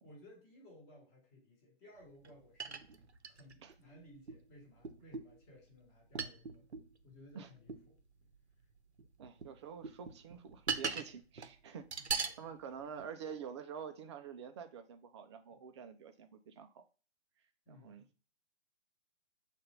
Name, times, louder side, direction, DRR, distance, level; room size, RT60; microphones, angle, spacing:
voice 1, 0.0-2.9 3.2-6.6 7.0-8.0 12.0-12.5 12.8-13.0 17.7-18.1, left 1 dB, 20° left, 3.4 m, -59 dB
sound 1, 2.2-2.3 2.6-3.7 4.3-4.4 4.8-5.4 6.1-6.9 7.7-7.8 9.0-9.5 9.8-11.1 11.4-11.5 11.9-12.4 13.0-13.1, right 5 dB, 80° right, 0.8 m, -39 dB
voice 2, 9.2-16.8 17.7-18.0, right 7 dB, 25° right, 0.6 m, -48 dB
6.6 x 2.6 x 5.6 m
figure-of-eight pair, 130°, 33 cm